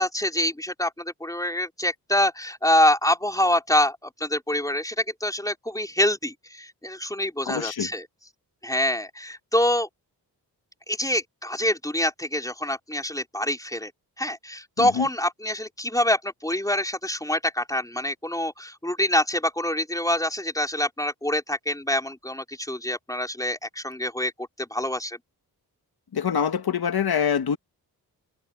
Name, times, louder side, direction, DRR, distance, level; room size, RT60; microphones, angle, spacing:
voice 1, 0.0-8.0 8.6-9.9 10.9-13.9 14.2-24.3 24.6-25.2, left 1 dB, 10° left, 4.4 m, -25 dB
voice 2, 7.5-7.9 14.8-15.1 26.1-27.6, left 7 dB, 65° left, 1.8 m, -25 dB
cardioid pair, 60°, 40 cm